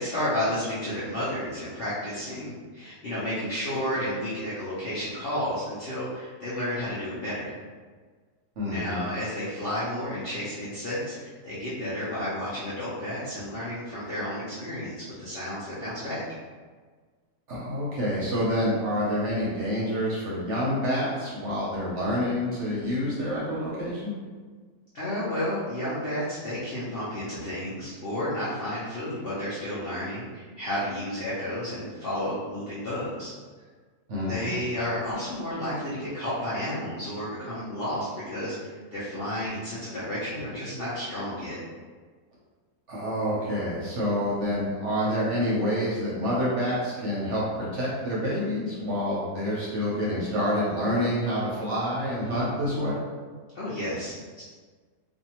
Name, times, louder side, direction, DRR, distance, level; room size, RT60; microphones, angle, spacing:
voice 1, 0.0-7.5 8.6-16.2 24.9-33.3 34.2-41.6 53.5-54.4, left 1 dB, 60° left, -11 dB, 0.6 m, -32 dB
voice 2, 8.6-9.0 17.5-24.1 34.1-34.6 42.9-53.0, equal, 60° right, -6 dB, 0.9 m, -27 dB
2.6 x 2.4 x 2.8 m, 1.5 s
omnidirectional pair, 1.7 m